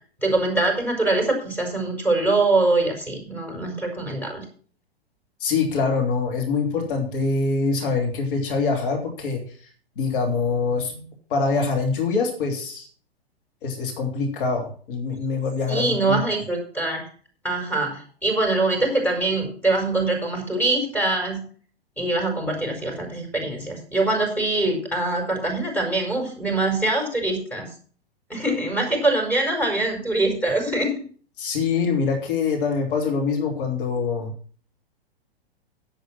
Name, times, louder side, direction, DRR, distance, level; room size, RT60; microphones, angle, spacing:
voice 1, 0.2-4.4 15.7-17.1 17.4-21.4 22.0-27.7 28.3-31.0, right 2 dB, 5° left, 0 dB, 4.7 m, -23 dB
voice 2, 5.4-9.6 10.0-12.9 13.6-16.2 31.4-34.3, left 4 dB, 55° left, 2 dB, 3.1 m, -24 dB
10.5 x 8.0 x 6.0 m, 0.43 s
figure-of-eight pair, 105°, 31 cm